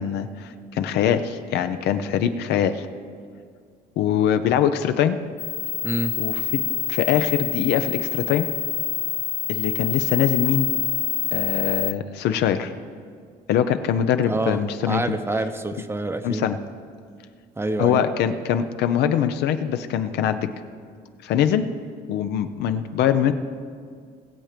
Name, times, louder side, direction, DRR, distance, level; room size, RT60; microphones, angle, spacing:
voice 1, 0.0-2.8 4.0-5.2 6.2-6.6 6.9-8.5 9.5-10.7 11.3-12.7 13.5-15.2 16.2-16.6 17.8-20.5 21.2-21.7 22.1-23.3, left 9 dB, 80° left, 9 dB, 0.7 m, -23 dB
sound 1, 5.4-11.9, left 10 dB, 40° left, 0.4 m, -26 dB
voice 2, 5.8-6.1 14.3-16.4 17.6-18.0, right 2 dB, 15° right, 9 dB, 0.8 m, -27 dB
19.0 x 7.5 x 5.1 m, 2.1 s
cardioid pair, 110°, 17 cm